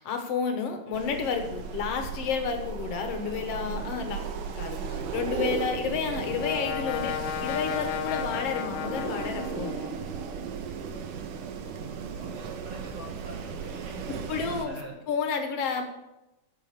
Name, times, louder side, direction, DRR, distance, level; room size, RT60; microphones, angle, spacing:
voice 1, 0.0-4.2 4.6-4.8 5.1-7.1 7.4-9.8 14.1-14.7 15.1-15.9, left 6 dB, 60° left, 5 dB, 2.0 m, -30 dB
Wind, 0.9-14.7, right 6 dB, 85° right, 2.5 m, -36 dB
voice 2, 4.8-5.3 11.6-15.0, right 1 dB, 40° right, 0 dB, 2.6 m, -45 dB
Brass instrument, 5.5-10.3, left 12 dB, 85° left, 2.2 m, -35 dB
9.8 x 7.6 x 6.6 m, 0.96 s
omnidirectional pair, 3.6 m